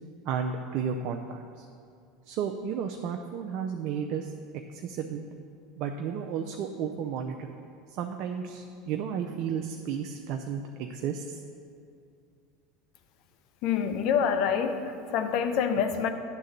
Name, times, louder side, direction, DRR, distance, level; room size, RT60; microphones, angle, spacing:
voice 1, 0.2-1.7 2.3-4.3 4.7-5.2 5.8-7.5 7.9-11.4, right 7 dB, 60° right, 3 dB, 0.5 m, -33 dB
voice 2, 13.6-16.1, left 7 dB, 60° left, 8 dB, 0.7 m, -26 dB
9.7 x 3.8 x 7.2 m, 2.4 s
hypercardioid pair, 95°, 0 cm